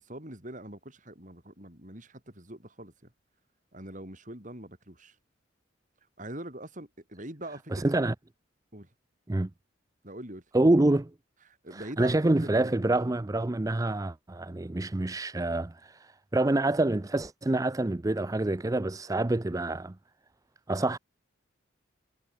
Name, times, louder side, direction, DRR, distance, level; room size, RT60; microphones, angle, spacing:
voice 1, 0.0-3.1 3.7-5.1 6.2-8.0 8.7-8.9 10.0-10.4 11.5-13.3, right 1 dB, 40° right, 6.4 m, -43 dB
voice 2, 7.7-8.1 9.3-9.5 10.5-11.1 11.7-19.9 20.7-21.0, right 2 dB, 20° right, 0.5 m, -27 dB
head